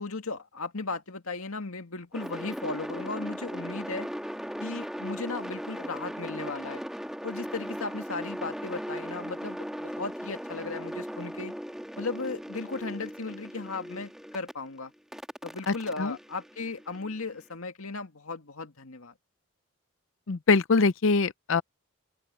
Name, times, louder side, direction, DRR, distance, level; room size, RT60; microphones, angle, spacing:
voice 1, 0.0-4.1 4.6-6.8 7.2-11.5 12.0-14.9 15.4-19.1, left 3 dB, 80° left, 2.1 m, -36 dB
sound 1, 2.1-14.5 15.1-17.2, equal, ahead, 1.5 m, -38 dB
voice 2, 15.7-16.2 20.3-21.6, left 4 dB, 65° left, 0.6 m, -24 dB
open air
head